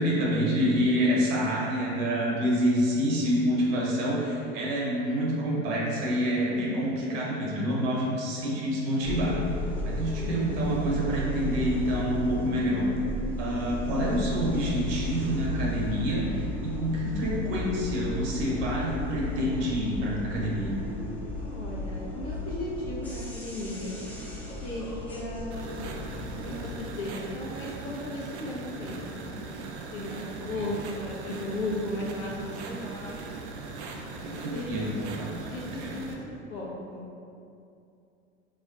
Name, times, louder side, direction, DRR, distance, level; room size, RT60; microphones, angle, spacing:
voice 1, 0.0-9.4 9.8-12.9 13.4-20.8 30.6-30.7 34.2-35.5 35.8-35.9, equal, 55° right, -4 dB, 0.9 m, -27 dB
voice 2, 6.7-7.3 10.2-10.7 13.2-13.7 21.4-24.0 24.6-25.8 26.4-29.4 29.9-33.1 34.5-35.0 35.5-36.2 36.5-37.1, left 1 dB, 40° left, -4 dB, 0.7 m, -36 dB
sound 1, 9.0-26.7, left 1 dB, 5° left, 0.3 m, -34 dB
sound 2, 25.5-36.1, right 3 dB, 75° right, 0.5 m, -39 dB
2.4 x 2.2 x 3.6 m, 2.6 s
hypercardioid pair, 95°, 35 cm